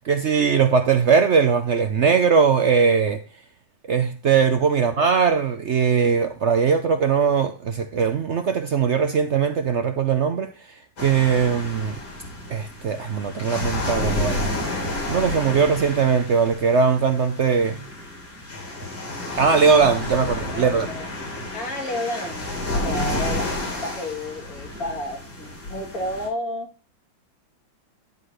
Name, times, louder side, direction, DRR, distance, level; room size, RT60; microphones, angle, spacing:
voice 1, 0.0-3.2 3.9-10.5 11.0-11.9 12.5-14.5 15.1-17.8 19.4-20.9, right 6 dB, 65° right, 0.7 m, -20 dB
sound 1, 11.0-26.3, left 2 dB, 80° left, 3.8 m, -30 dB
voice 2, 20.5-21.1 21.5-22.5 22.8-23.5 23.8-26.7, left 1 dB, 50° left, 2.4 m, -31 dB
11.0 x 3.9 x 6.4 m
omnidirectional pair, 2.0 m